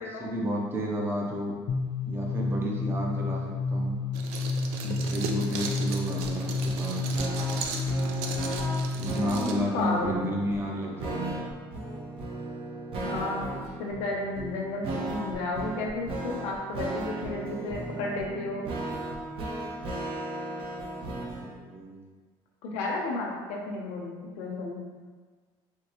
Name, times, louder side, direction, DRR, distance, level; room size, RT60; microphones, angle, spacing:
voice 1, 0.2-1.6 2.1-4.0 4.8-7.3 9.0-11.4 21.4-22.0, equal, 20° right, -1 dB, 0.6 m, -31 dB
sound 1, 1.7-9.2, left 3 dB, 40° left, 0.5 m, -30 dB
sound 2, 4.1-9.5, right 5 dB, 85° right, 0.4 m, -37 dB
sound 3, 6.2-21.5, right 2 dB, 55° right, 0.8 m, -36 dB
voice 2, 9.2-10.2 13.0-18.7 22.6-24.8, left 2 dB, 85° left, -1 dB, 0.8 m, -33 dB
4.5 x 2.9 x 3.0 m, 1.5 s
cardioid pair, 130°, 11 cm